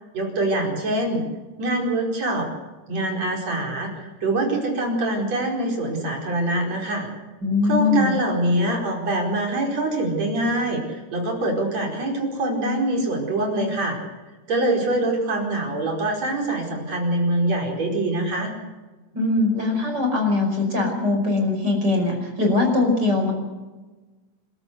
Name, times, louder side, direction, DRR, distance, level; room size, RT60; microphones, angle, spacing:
voice 1, 0.1-1.2 1.6-2.5 2.9-7.1 7.6-14.0 14.5-18.5, right 1 dB, 40° right, 0 dB, 5.9 m, -24 dB
voice 2, 7.4-8.1 19.1-23.3, left 3 dB, 25° right, 3 dB, 5.7 m, -21 dB
29.0 x 13.0 x 8.1 m, 1.2 s
omnidirectional pair, 4.7 m